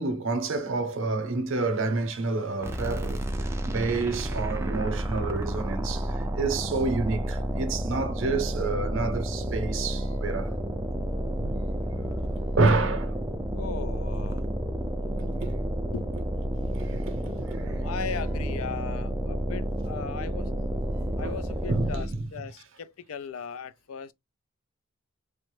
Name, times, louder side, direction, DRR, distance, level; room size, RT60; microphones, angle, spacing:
voice 1, 0.0-3.2 3.6-10.5 11.4-11.6 12.6-13.1 15.3-15.6 16.7-17.7 21.2-21.3 21.7-22.3, right 3 dB, 65° right, 0.6 m, -29 dB
sound 1, 2.6-22.3, right 1 dB, 15° right, 0.3 m, -30 dB
voice 2, 13.5-14.5 15.9-16.1 17.6-20.5 21.2-24.1, left 6 dB, 85° left, 0.4 m, -38 dB
3.3 x 2.1 x 3.2 m
head